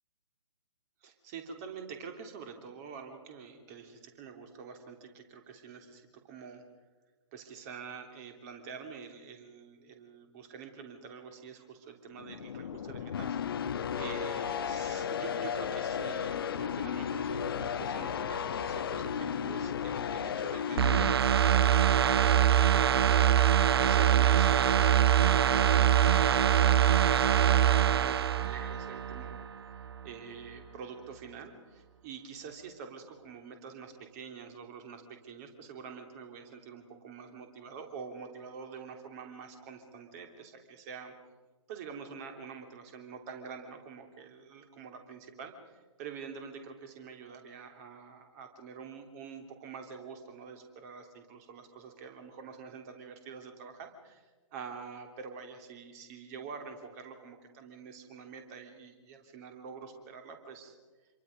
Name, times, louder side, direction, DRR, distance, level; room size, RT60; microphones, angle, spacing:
voice 1, 1.0-6.6 7.3-29.5 30.0-41.1 41.7-60.7, right 6 dB, 30° right, 5 dB, 3.3 m, -46 dB
sound 1, 12.1-21.1, left 8 dB, 45° left, 1.2 m, -34 dB
sound 2, 20.8-29.4 29.8-29.9, right 10 dB, 50° right, 0.7 m, -24 dB
27.0 x 23.0 x 5.3 m, 1.3 s
figure-of-eight pair, 130°, 17 cm